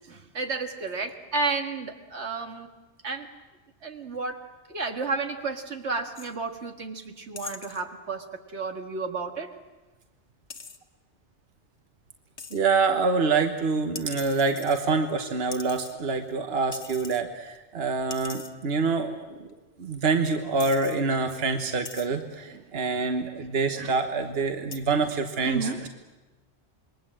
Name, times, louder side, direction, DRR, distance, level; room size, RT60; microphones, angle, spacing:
voice 1, 0.0-2.7 3.0-3.3 3.8-4.4 4.7-9.5 22.5-22.6 22.9-23.1 23.3-23.9 24.6-24.7 25.4-25.9, right 4 dB, 85° right, 4 dB, 2.1 m, -32 dB
sound 1, 6.2-6.4 7.4-7.8 10.5-10.8 12.4-12.6 14.0-15.1 15.5-16.3 16.7-17.2 17.6-17.7 18.1-18.5 19.5-19.6 20.1-20.2 20.6-21.0 21.9-22.1 22.9-23.3 24.7-24.8, left 4 dB, 55° left, 1.4 m, -42 dB
voice 2, 12.5-19.4 19.8-25.9, right 4 dB, 65° right, 6 dB, 1.4 m, -26 dB
27.0 x 22.0 x 7.6 m, 1.1 s
omnidirectional pair, 1.1 m